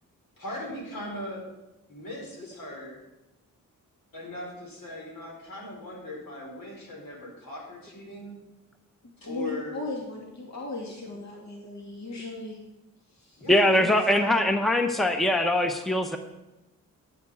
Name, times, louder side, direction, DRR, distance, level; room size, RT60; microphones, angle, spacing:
voice 1, 0.4-1.4 1.9-3.0 4.1-8.4 9.2-9.9 13.4-14.5, left 1 dB, 70° left, -2 dB, 4.4 m, -39 dB
voice 2, 9.2-12.6 13.1-13.4, left 2 dB, 50° left, -1 dB, 2.2 m, -37 dB
voice 3, 13.5-16.2, left 1 dB, ahead, 6 dB, 0.8 m, -22 dB
10.0 x 9.6 x 4.8 m, 1.0 s
cardioid pair, 80°, 35 cm